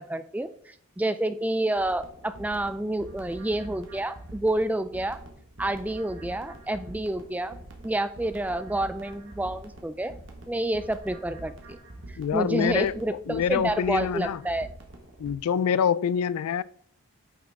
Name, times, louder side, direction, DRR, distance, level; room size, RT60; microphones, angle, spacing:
voice 1, 0.0-5.2 5.6-7.6 7.8-10.1 10.5-11.8 12.1-14.7, right 1 dB, 5° right, 0.3 m, -29 dB
sound 1, 1.8-15.3, right 1 dB, 60° right, 1.6 m, -45 dB
voice 2, 12.2-12.9 13.3-14.4 15.2-16.6, left 7 dB, 85° left, 0.3 m, -25 dB
9.5 x 6.0 x 3.6 m
head